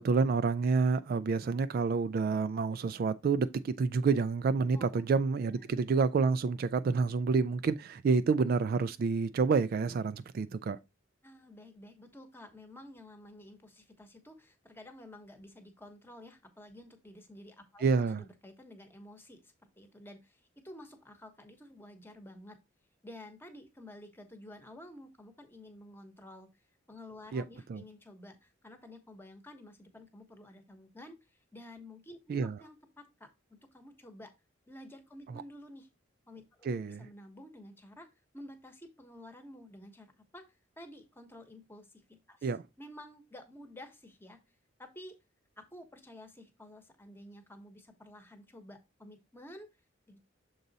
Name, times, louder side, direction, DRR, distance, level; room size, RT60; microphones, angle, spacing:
voice 1, 0.0-10.8 17.8-18.2 27.3-27.4 27.7-27.8 32.3-32.6 36.6-37.0 42.4-42.6, right 4 dB, 50° right, 0.3 m, -28 dB
voice 2, 4.7-5.1 5.5-5.6 11.2-22.6 23.0-26.5 26.9-31.2 31.5-34.3 34.7-35.9 36.3-38.1 38.3-40.1 40.3-40.4 40.8-42.5 42.8-44.4 44.8-45.2 45.6-49.7 50.1-50.2, left 1 dB, 10° left, 1.0 m, -51 dB
6.8 x 3.9 x 4.0 m
head